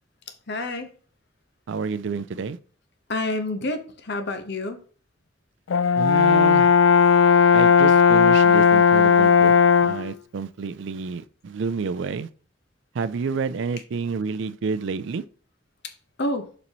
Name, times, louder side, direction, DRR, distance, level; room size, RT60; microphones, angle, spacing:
voice 1, 0.3-0.9 3.1-4.8 15.8-15.9 16.2-16.5, left 2 dB, 60° left, 1.1 m, -29 dB
voice 2, 1.7-2.6 6.0-6.8 7.5-9.5 9.8-12.3 12.9-15.2, right 5 dB, 65° right, 0.4 m, -29 dB
Brass instrument, 5.7-10.1, left 6 dB, 80° left, 0.4 m, -16 dB
6.9 x 5.4 x 3.0 m
head